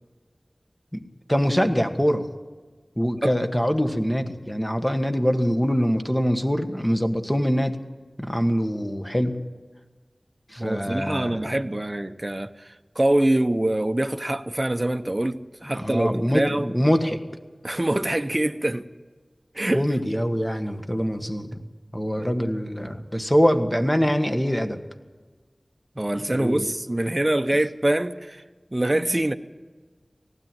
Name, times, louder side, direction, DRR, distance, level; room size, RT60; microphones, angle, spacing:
voice 1, 1.3-2.3 3.0-7.8 8.2-9.3 10.5-11.4 15.7-17.2 19.7-21.6 21.9-24.8 26.3-26.7 28.9-29.1, equal, 10° left, 1.6 m, -24 dB
voice 2, 10.6-16.7 17.6-18.9 19.5-19.8 22.2-22.3 26.0-28.4 28.7-29.3, right 1 dB, 30° right, 0.9 m, -24 dB
18.5 x 16.0 x 9.1 m
wide cardioid pair, 55°, 0 cm